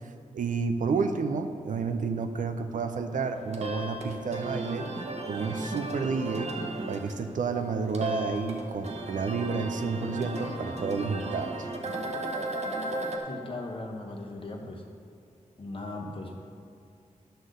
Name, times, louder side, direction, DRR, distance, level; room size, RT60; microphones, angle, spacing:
voice 1, 0.3-4.9 5.3-6.5 6.9-11.7, right 4 dB, 75° right, 7 dB, 0.6 m, -30 dB
sound 1, 3.2-13.2, right 2 dB, 55° right, 0.9 m, -36 dB
voice 2, 13.3-14.8 15.6-16.4, left 2 dB, 40° left, 1 dB, 1.0 m, -38 dB
11.0 x 3.9 x 6.5 m, 2.4 s
wide cardioid pair, 170°, 13 cm